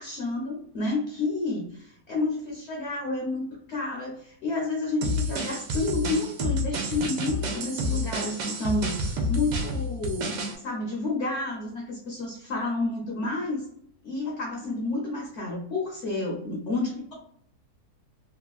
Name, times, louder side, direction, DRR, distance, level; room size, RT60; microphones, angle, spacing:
voice 1, 0.0-13.6 14.0-17.1, left 2 dB, 60° left, 0 dB, 0.7 m, -30 dB
sound 1, 5.0-10.6, equal, 85° right, 1.3 m, -29 dB
3.2 x 2.3 x 2.3 m, 0.70 s
omnidirectional pair, 1.8 m